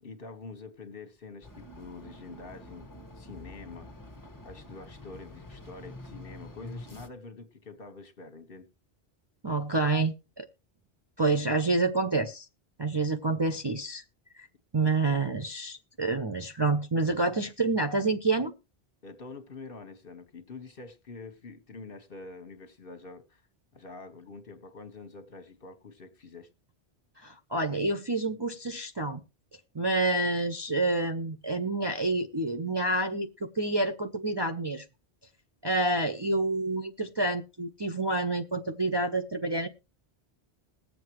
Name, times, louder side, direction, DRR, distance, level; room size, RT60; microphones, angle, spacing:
voice 1, 0.0-2.9 3.1-3.9 4.4-8.7 19.0-23.4 23.7-26.5, left 3 dB, 55° left, 1.5 m, -46 dB
sound 1, 1.4-7.1, left 1 dB, 20° left, 1.4 m, -47 dB
voice 2, 9.4-10.5 11.2-12.5 12.8-14.0 14.3-14.5 14.7-18.5 27.2-29.2 29.7-34.8 35.6-39.7, right 2 dB, 30° right, 0.6 m, -28 dB
20.0 x 7.7 x 3.0 m
omnidirectional pair, 1.1 m